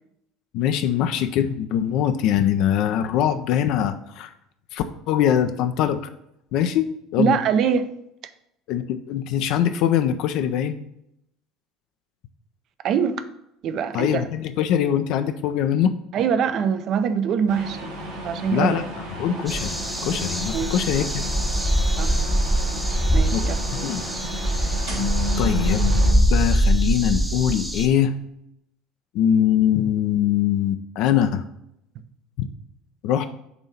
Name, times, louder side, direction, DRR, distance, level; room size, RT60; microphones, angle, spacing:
voice 1, 0.5-4.3 4.7-6.0 6.5-7.4 8.7-10.8 13.9-15.9 18.5-19.8 20.1-21.2 23.3-24.0 24.9-25.0 25.4-26.0 26.3-28.1 29.1-31.4 32.4-32.5 33.0-33.3, left 9 dB, 60° left, 9 dB, 0.3 m, -22 dB
voice 2, 7.2-7.9 12.8-13.2 13.6-14.2 16.1-17.9 18.2-18.8 20.5-20.8 22.0-22.1 23.1-23.9, right 7 dB, 50° right, 11 dB, 0.5 m, -23 dB
sound 1, 17.5-26.1, equal, 75° right, 1.6 m, -33 dB
sound 2, 19.5-27.9, equal, 5° right, 0.7 m, -23 dB
6.8 x 2.7 x 5.6 m, 0.80 s
figure-of-eight pair, 65°, 0 cm